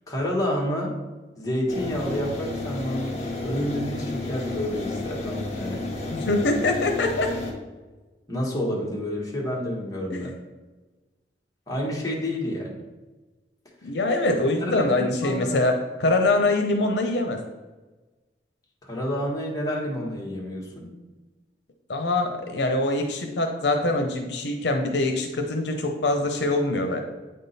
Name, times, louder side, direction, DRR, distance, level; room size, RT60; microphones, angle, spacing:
voice 1, 0.1-0.9 1.4-5.8 8.3-10.3 11.7-12.8 14.6-14.9 15.2-15.6 18.8-20.9, equal, 20° left, -3 dB, 1.4 m, -29 dB
sound 1, 1.7-7.5, left 2 dB, 40° left, 1.5 m, -32 dB
voice 2, 6.1-7.3 10.1-10.2 13.8-15.7 16.0-17.4 21.9-27.0, left 2 dB, 70° left, 4 dB, 0.7 m, -24 dB
8.8 x 3.7 x 4.1 m, 1.2 s
head